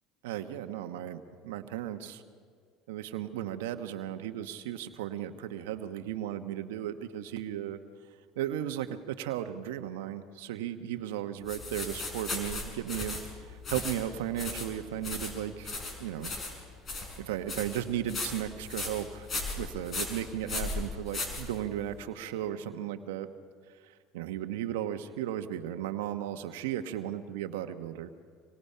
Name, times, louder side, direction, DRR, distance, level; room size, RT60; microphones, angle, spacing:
voice 1, 0.2-2.2 2.9-7.8 8.4-13.2 13.5-15.7 16.0-16.3 17.2-19.3 19.6-23.3 24.1-28.1, right 11 dB, 85° right, 8 dB, 1.1 m, -35 dB
sound 1, 11.5-21.9, left 3 dB, 40° left, 6.4 m, -37 dB
27.0 x 24.5 x 5.7 m, 2.1 s
supercardioid pair, 85°, 0 cm